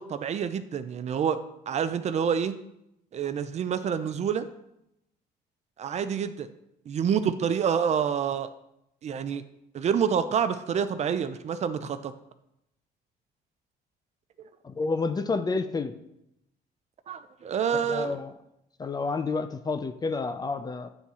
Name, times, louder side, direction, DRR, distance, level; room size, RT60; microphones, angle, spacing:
voice 1, 0.0-1.4 1.7-2.5 3.1-4.5 5.8-6.5 6.9-8.5 9.0-9.4 9.7-12.1 17.1-18.2, right 7 dB, 40° right, 11 dB, 0.5 m, -27 dB
voice 2, 14.6-15.9 17.7-18.3 18.8-20.9, left 4 dB, 25° left, 10 dB, 0.4 m, -29 dB
9.0 x 3.5 x 4.2 m, 0.82 s
cardioid pair, 110°, 17 cm